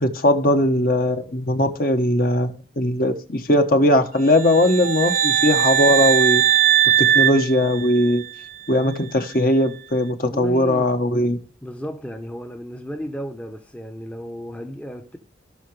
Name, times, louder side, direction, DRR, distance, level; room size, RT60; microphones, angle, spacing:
voice 1, 0.0-6.4 7.0-8.2 8.7-11.4, left 1 dB, 50° left, 1.2 m, -19 dB
sound 1, 4.3-8.3, right 9 dB, 45° right, 0.5 m, -19 dB
voice 2, 10.2-10.9 11.6-15.2, equal, 5° left, 0.8 m, -34 dB
17.5 x 5.9 x 3.3 m
head